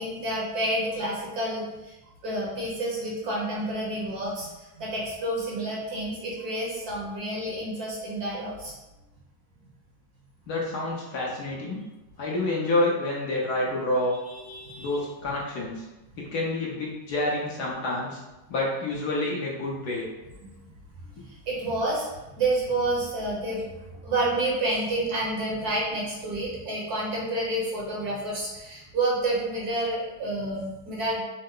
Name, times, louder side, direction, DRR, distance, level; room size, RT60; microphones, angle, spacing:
voice 1, 0.0-1.9 2.2-8.7 14.3-15.0 20.6-20.7 21.2-22.1 22.4-23.7 24.0-31.2, right 1 dB, 60° right, -4 dB, 1.4 m, -29 dB
voice 2, 10.5-11.8 12.2-14.1 14.8-15.8 16.3-18.2 18.5-20.0, left 2 dB, 60° left, -4 dB, 1.2 m, -28 dB
5.4 x 2.0 x 3.8 m, 1.0 s
omnidirectional pair, 2.1 m